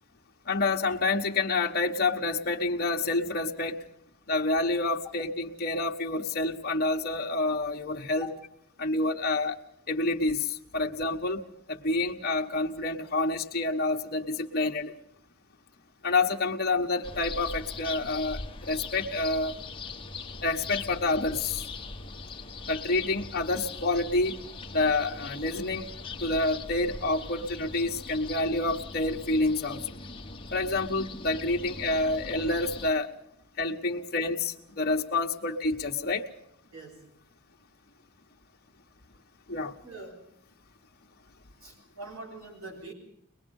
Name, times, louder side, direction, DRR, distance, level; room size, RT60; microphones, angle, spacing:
voice 1, 0.5-3.8 4.3-8.3 8.8-9.5 9.9-11.4 11.7-14.9 16.0-19.6 20.4-21.7 22.7-24.3 24.7-25.9 26.2-29.8 30.5-33.1 33.6-36.2 39.5-39.7, left 2 dB, 45° left, 1 dB, 1.3 m, -28 dB
sound 1, 17.0-32.9, left 3 dB, 25° left, 1.3 m, -41 dB
voice 2, 36.7-37.1 39.8-40.3 41.6-42.9, right 1 dB, 75° right, 2 dB, 5.5 m, -43 dB
22.5 x 21.0 x 5.4 m, 0.73 s
head